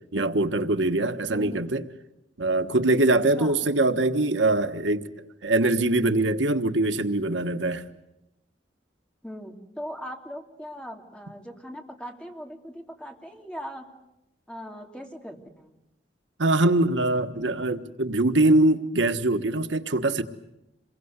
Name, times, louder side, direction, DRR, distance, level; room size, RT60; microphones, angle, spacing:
voice 1, 0.1-1.8 2.4-5.1 5.4-7.8 16.4-20.2, right 2 dB, 90° right, 1.4 m, -23 dB
voice 2, 1.3-1.7 3.1-3.6 9.2-13.9 14.5-15.7, equal, 5° left, 3.0 m, -40 dB
28.0 x 22.5 x 8.2 m
head